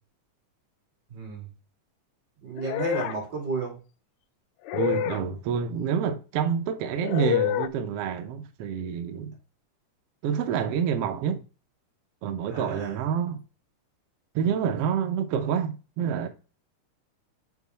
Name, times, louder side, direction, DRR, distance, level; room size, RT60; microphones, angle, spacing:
voice 1, 1.1-1.5 2.4-3.8 12.5-13.0, right 4 dB, 35° right, 3.4 m, -33 dB
sound 1, 2.6-3.2 4.7-5.2 7.0-7.7, left 12 dB, 90° left, 1.6 m, -27 dB
voice 2, 4.7-9.3 10.2-11.4 12.2-13.4 14.3-16.3, right 7 dB, 75° right, 1.4 m, -28 dB
7.1 x 4.8 x 4.1 m
omnidirectional pair, 3.8 m